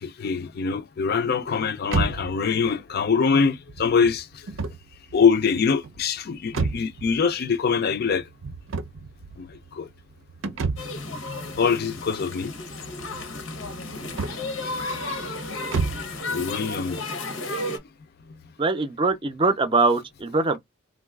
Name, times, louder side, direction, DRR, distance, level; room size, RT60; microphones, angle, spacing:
voice 1, 0.0-4.4 5.1-8.3 9.4-9.9 11.6-12.5 16.3-17.0, left 5 dB, 55° left, 0.4 m, -24 dB
sound 1, 1.8-16.2, right 4 dB, 85° right, 0.6 m, -33 dB
sound 2, 10.8-17.8, left 2 dB, 85° left, 0.9 m, -33 dB
voice 2, 18.6-20.6, right 3 dB, 25° right, 0.5 m, -22 dB
3.7 x 2.3 x 2.3 m
head